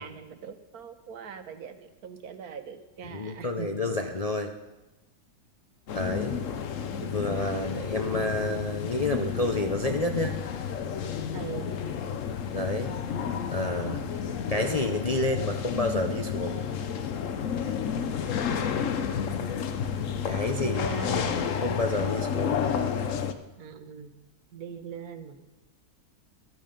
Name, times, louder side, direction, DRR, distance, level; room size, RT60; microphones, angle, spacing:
voice 1, 0.0-4.0 11.3-11.7 20.6-21.4 23.6-24.1 24.5-25.4, right 7 dB, 75° right, 9 dB, 1.5 m, -41 dB
voice 2, 3.0-4.5 5.9-6.4 7.0-10.4 12.5-12.9 13.5-14.0 14.5-16.6 20.2-22.6, left 2 dB, 35° left, 3 dB, 0.6 m, -29 dB
sound 1, 5.9-23.3, left 7 dB, 60° left, 1.1 m, -31 dB
14.5 x 12.0 x 5.2 m, 1.1 s
omnidirectional pair, 1.6 m